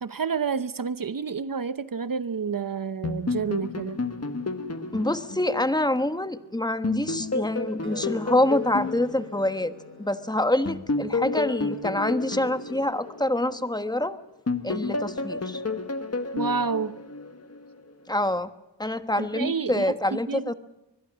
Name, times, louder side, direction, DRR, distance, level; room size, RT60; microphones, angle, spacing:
voice 1, 0.0-4.0 16.3-17.0 19.2-19.8 20.1-20.5, right 6 dB, 50° right, 0.8 m, -29 dB
sound 1, 3.0-6.4 6.8-10.1 10.7-14.0 14.5-17.7, left 3 dB, 35° left, 1.4 m, -31 dB
voice 2, 4.9-9.7 10.0-14.2 14.6-15.6 18.1-18.5 18.8-20.5, left 1 dB, 10° left, 1.2 m, -26 dB
Wind instrument woodwind instrument, 7.8-12.9, equal, 30° right, 4.1 m, -49 dB
24.0 x 21.0 x 6.2 m
wide cardioid pair, 90°, 42 cm